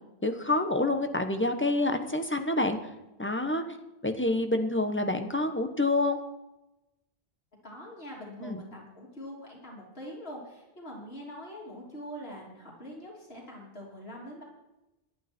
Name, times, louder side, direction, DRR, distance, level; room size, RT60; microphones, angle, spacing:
voice 1, 0.2-2.8 3.2-3.6 4.0-6.2 8.4-8.6, left 2 dB, 10° left, 6 dB, 1.1 m, -27 dB
voice 2, 7.6-14.4, equal, 75° left, -3 dB, 3.6 m, -43 dB
18.0 x 11.5 x 4.5 m, 0.96 s
omnidirectional pair, 1.1 m